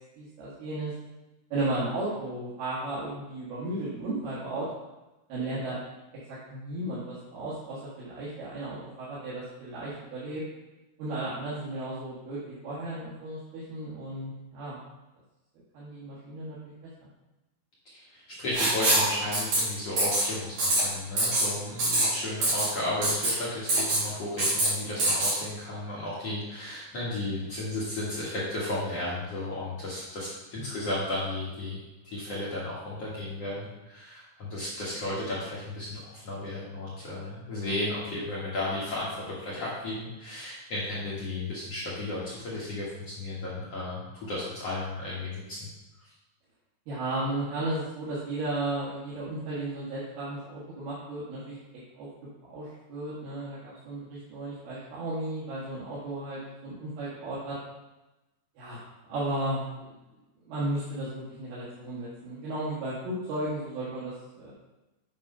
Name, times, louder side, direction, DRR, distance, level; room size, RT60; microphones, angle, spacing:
voice 1, 0.2-0.9 1.5-4.7 5.3-5.8 6.3-10.4 11.0-14.8 15.7-17.1 30.5-30.8 46.9-51.5 52.0-52.1 52.5-57.6 58.6-59.9 60.4-64.5, right 1 dB, 65° right, -9 dB, 3.3 m, -34 dB
voice 2, 17.9-45.7 46.0-46.1, left 2 dB, 60° left, -8 dB, 1.7 m, -34 dB
Writing, 18.5-19.1 19.3-19.6 20.0-20.2 20.6-20.8 21.2-21.5 21.8-22.1 22.4-22.7 23.0-23.3 23.7-24.0 24.4-24.7 25.0-25.3, right 2 dB, 50° right, 3.6 m, -24 dB
8.3 x 4.0 x 5.4 m, 1.0 s
omnidirectional pair, 5.0 m